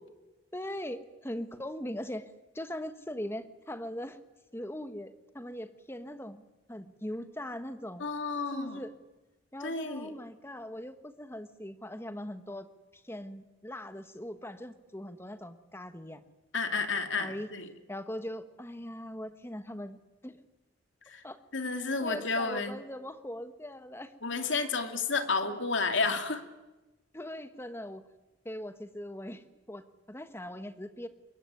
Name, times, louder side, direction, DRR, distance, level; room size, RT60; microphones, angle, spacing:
voice 1, 0.5-4.2 4.5-8.0 8.5-8.9 9.5-12.7 12.9-16.2 17.2-17.5 17.9-20.4 21.2-21.4 22.0-24.1 27.1-28.1 28.4-31.1, left 1 dB, 15° left, 10 dB, 1.4 m, -40 dB
voice 2, 8.0-8.8 9.6-10.1 16.5-17.7 21.1-21.2 21.5-22.8 24.2-26.4, left 4 dB, 75° left, 7 dB, 2.5 m, -31 dB
25.5 x 22.5 x 9.5 m, 1.1 s
head